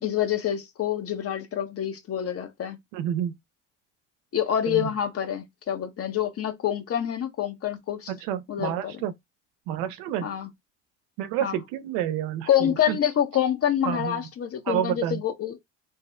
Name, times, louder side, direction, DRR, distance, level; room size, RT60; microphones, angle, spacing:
voice 1, 0.0-2.8 4.3-8.1 8.5-9.0 10.2-10.5 11.4-11.6 12.5-15.6, left 10 dB, 40° left, 0.7 m, -27 dB
voice 2, 2.9-3.4 4.7-4.9 8.1-9.1 9.7-10.3 11.2-13.0 13.9-14.2 14.7-15.2, right 11 dB, 75° right, 0.6 m, -29 dB
2.7 x 2.0 x 3.5 m
hypercardioid pair, 65°, 35 cm